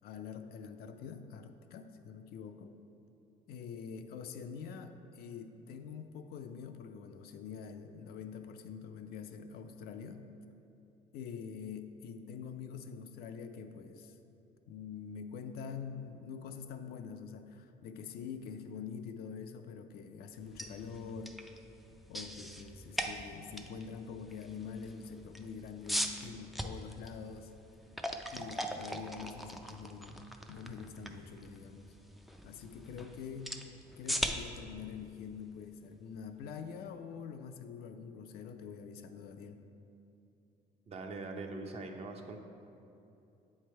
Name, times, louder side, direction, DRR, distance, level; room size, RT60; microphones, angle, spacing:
voice 1, 0.0-2.8 3.5-10.2 11.1-14.2 14.7-21.4 22.1-27.5 28.3-31.9 32.4-33.6 34.0-39.6, left 6 dB, 70° left, 7 dB, 0.4 m, -45 dB
sound 1, 20.4-36.3, equal, ahead, 0.3 m, -42 dB
voice 2, 40.9-42.4, right 3 dB, 40° right, 4 dB, 0.6 m, -42 dB
8.1 x 3.3 x 4.4 m, 2.7 s
cardioid pair, 110°, 17 cm